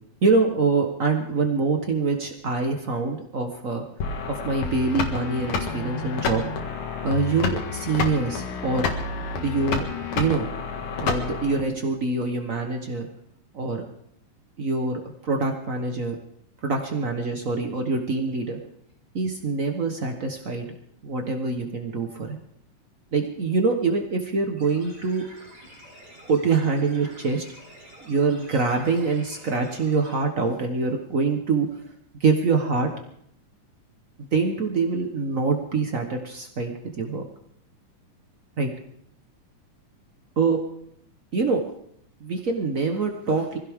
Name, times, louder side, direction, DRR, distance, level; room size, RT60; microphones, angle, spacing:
voice 1, 0.2-3.8 4.3-6.4 7.0-8.9 9.4-9.9 10.1-10.5 11.0-13.1 13.5-13.8 14.6-16.2 16.6-18.6 19.1-20.7 21.0-22.4 23.1-25.2 26.3-27.4 28.0-31.7 32.2-32.9 34.3-37.2 38.6-38.7 40.4-40.6 41.3-41.6 42.2-43.6, right 4 dB, 80° right, 3 dB, 0.7 m, -25 dB
sound 1, 4.0-11.6, left 5 dB, 75° left, 3.2 m, -29 dB
sound 2, 24.6-30.1, right 1 dB, 60° right, 9.4 m, -48 dB
24.5 x 16.0 x 3.6 m, 0.71 s
omnidirectional pair, 3.5 m